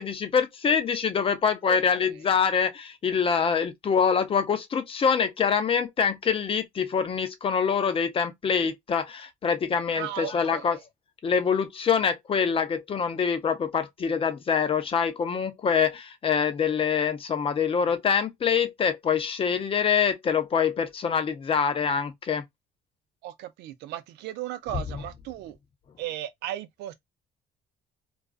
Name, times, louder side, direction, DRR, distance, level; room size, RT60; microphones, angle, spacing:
voice 1, 0.0-10.8 11.2-22.4, left 6 dB, 35° left, 0.5 m, -25 dB
voice 2, 1.7-2.1 9.9-10.8 23.2-25.6 26.0-26.9, right 13 dB, 85° right, 0.5 m, -36 dB
2.4 x 2.3 x 2.3 m
cardioid pair, 110°, 17 cm